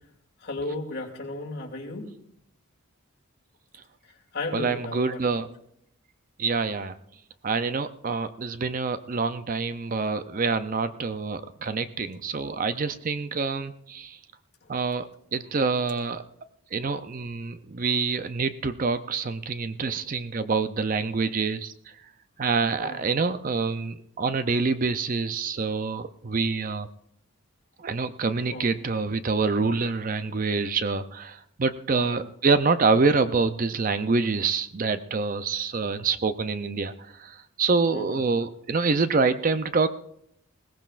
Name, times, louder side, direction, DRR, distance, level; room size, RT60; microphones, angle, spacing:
voice 1, 0.4-2.1 4.3-5.4 22.8-23.0 28.5-28.7 32.0-32.2 37.9-38.2, left 2 dB, 50° left, -1 dB, 2.6 m, -34 dB
voice 2, 4.5-5.5 6.4-7.0 7.4-14.2 14.7-16.2 16.7-21.7 22.4-26.9 27.8-36.9 37.2-39.9, right 4 dB, 40° right, 11 dB, 0.5 m, -26 dB
21.0 x 17.0 x 2.5 m, 0.73 s
head